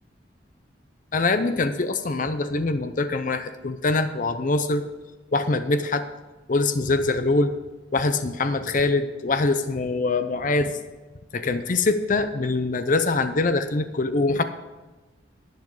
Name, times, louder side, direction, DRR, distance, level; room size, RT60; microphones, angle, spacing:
voice 1, 1.1-4.8 5.3-6.0 6.5-7.5 7.9-10.7 11.3-14.4, left 3 dB, 45° left, 9 dB, 0.6 m, -23 dB
10.5 x 10.5 x 4.9 m, 1.2 s
head